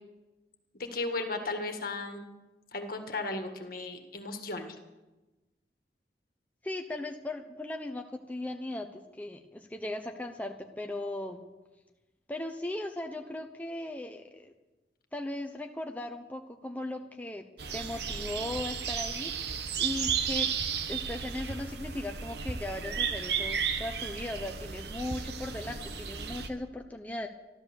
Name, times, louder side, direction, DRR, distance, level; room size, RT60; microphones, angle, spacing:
voice 1, 0.7-2.2 2.7-4.8, left 2 dB, 55° left, 5 dB, 1.8 m, -35 dB
voice 2, 6.6-11.4 12.3-14.5 15.1-17.4 17.7-20.5 20.9-27.3, left 1 dB, 10° left, 3 dB, 0.7 m, -38 dB
sound 1, 17.6-26.5, right 6 dB, 70° right, 1.1 m, -34 dB
13.0 x 12.5 x 7.1 m, 1.1 s
head